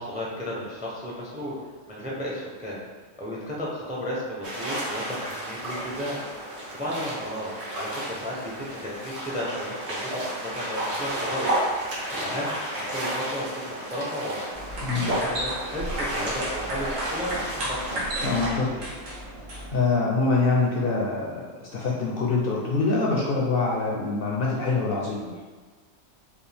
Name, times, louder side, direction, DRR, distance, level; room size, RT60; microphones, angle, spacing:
voice 1, 0.0-1.6 1.9-2.8 3.2-14.6 15.0-18.0, equal, 10° right, -4 dB, 0.5 m, -34 dB
sound 1, 4.4-18.5, right 1 dB, 60° right, 1.4 m, -32 dB
sound 2, 14.5-19.9, right 1 dB, 85° right, 1.5 m, -33 dB
voice 2, 14.8-15.1 18.2-18.8 19.5-25.3, left 3 dB, 55° left, -3 dB, 0.7 m, -25 dB
5.1 x 2.4 x 3.4 m, 1.4 s
omnidirectional pair, 1.3 m